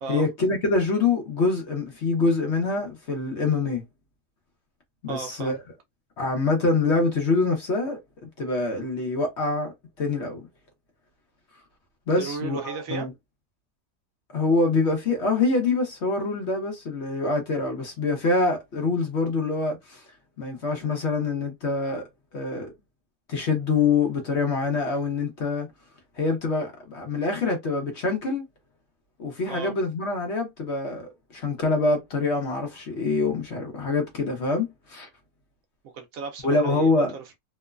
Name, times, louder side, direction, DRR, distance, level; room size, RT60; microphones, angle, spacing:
voice 1, 0.1-3.8 5.0-5.6 6.2-8.0 8.4-9.7 10.0-10.4 12.1-13.1 14.3-20.0 20.4-22.0 22.3-22.7 23.3-25.7 26.2-28.4 29.2-35.1 36.4-37.1, left 3 dB, 55° left, 0.9 m, -25 dB
voice 2, 5.1-5.5 12.2-13.1 29.5-29.7 35.8-37.4, right 5 dB, 70° right, 0.8 m, -35 dB
3.0 x 2.1 x 2.3 m
omnidirectional pair, 1.8 m